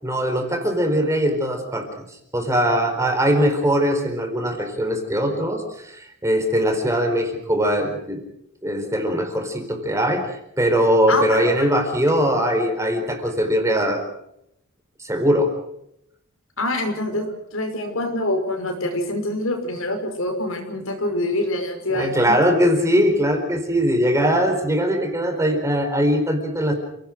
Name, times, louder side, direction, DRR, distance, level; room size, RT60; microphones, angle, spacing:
voice 1, 0.0-1.9 2.3-8.2 8.6-14.0 15.0-15.5 21.9-26.7, equal, 15° right, 5 dB, 4.5 m, -21 dB
voice 2, 11.1-11.7 12.5-12.7 16.6-22.4, left 1 dB, 75° left, 5 dB, 5.7 m, -25 dB
29.0 x 18.5 x 6.5 m, 0.78 s
head